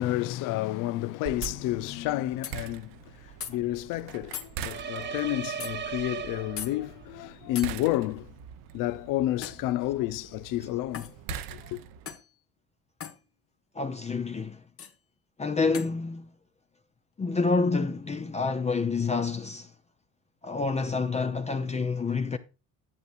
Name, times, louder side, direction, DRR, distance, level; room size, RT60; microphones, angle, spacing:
voice 1, 0.0-3.0 3.5-8.3 8.7-11.1 11.5-11.8, left 15 dB, 70° left, 0.6 m, -30 dB
sound 1, 1.3-12.1, right 8 dB, 75° right, 0.9 m, -43 dB
sound 2, 1.4-1.6 2.4-2.6 3.4-3.5 4.3-4.5 5.6-5.7 6.6-6.7 7.6-7.7 9.4-9.7 10.9-11.2 12.1-12.3 13.0-13.2 14.8-14.9 15.7-15.9, left 8 dB, 40° left, 1.2 m, -38 dB
sound 3, 4.7-7.0, right 7 dB, 35° right, 0.8 m, -36 dB
voice 2, 13.7-14.6 15.4-16.3 17.2-19.7 20.4-22.4, left 4 dB, 20° left, 0.6 m, -28 dB
11.0 x 6.8 x 2.5 m
supercardioid pair, 80°, 33 cm